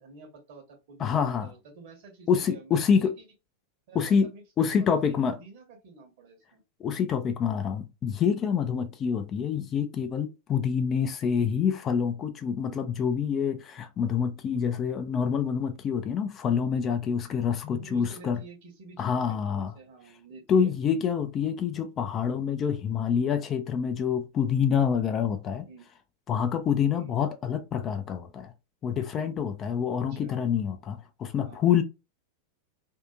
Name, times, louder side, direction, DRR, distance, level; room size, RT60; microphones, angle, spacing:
voice 1, 0.0-3.2 3.9-6.6 17.7-20.7 25.7-25.9 26.9-27.1 30.1-30.4 31.4-31.6, right 3 dB, 50° right, 1.1 m, -49 dB
voice 2, 1.0-1.5 2.3-3.1 3.9-4.3 4.6-5.4 6.8-18.4 19.0-19.7 20.5-25.6 26.3-28.5 28.8-31.8, left 7 dB, 30° left, 0.4 m, -27 dB
2.7 x 2.5 x 2.3 m
figure-of-eight pair, 90°, 0 cm